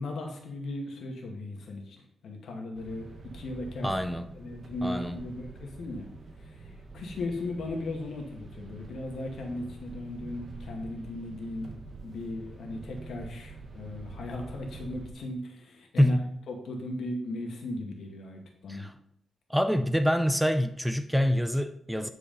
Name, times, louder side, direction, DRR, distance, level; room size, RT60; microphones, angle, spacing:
voice 1, 0.0-2.0 2.2-3.9 4.3-6.1 6.4-16.2 16.5-18.9, left 2 dB, 75° left, 2.0 m, -37 dB
sound 1, 2.7-15.1, right 3 dB, 45° right, 1.3 m, -46 dB
voice 2, 3.8-4.3 4.8-5.2 16.0-16.4 18.7-18.9 19.5-22.1, equal, ahead, 0.5 m, -26 dB
9.8 x 4.9 x 5.3 m
wide cardioid pair, 145°, 0 cm